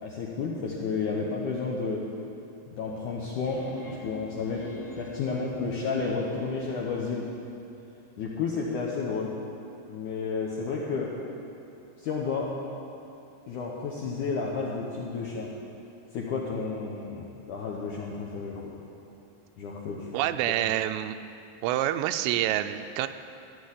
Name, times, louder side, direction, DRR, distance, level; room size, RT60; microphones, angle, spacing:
voice 1, 0.0-2.0 2.7-4.7 5.0-7.3 8.2-9.3 9.9-11.1 12.0-12.5 13.5-15.5 16.1-18.8 19.6-20.1, left 4 dB, 70° left, -3 dB, 1.9 m, -31 dB
sound 1, 3.4-7.2, left 2 dB, 55° left, 1.7 m, -43 dB
voice 2, 20.1-21.2 21.6-23.1, right 12 dB, 85° right, 10 dB, 2.8 m, -27 dB
14.0 x 7.1 x 9.9 m, 2.6 s
omnidirectional pair, 5.1 m